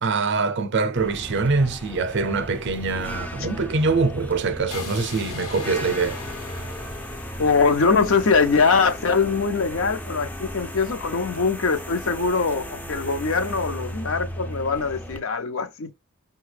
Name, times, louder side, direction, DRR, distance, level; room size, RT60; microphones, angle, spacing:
voice 1, 0.0-6.2, right 4 dB, 50° right, 0.5 m, -24 dB
sound 1, 1.0-15.2, equal, 5° left, 0.4 m, -36 dB
sound 2, 4.7-8.8, left 3 dB, 90° left, 1.2 m, -39 dB
voice 2, 7.4-15.9, left 4 dB, 60° left, 0.6 m, -22 dB
5.5 x 2.3 x 3.2 m
head